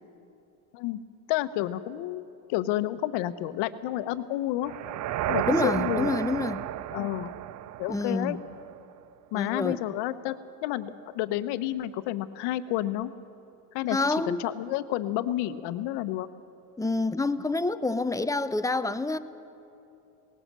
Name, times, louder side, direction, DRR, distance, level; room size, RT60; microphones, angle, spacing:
voice 1, 1.3-4.7 5.3-6.1 6.9-7.3 7.8-8.4 9.3-10.4 10.6-13.1 13.7-14.0 14.3-16.3, left 14 dB, 65° left, 1.1 m, -30 dB
sound 1, 4.6-8.7, right 13 dB, 40° right, 0.5 m, -32 dB
voice 2, 5.5-6.6 7.9-8.4 9.3-9.8 13.9-14.4 16.8-19.2, left 2 dB, 10° left, 0.6 m, -27 dB
19.0 x 19.0 x 7.5 m
supercardioid pair, 105°, 44 cm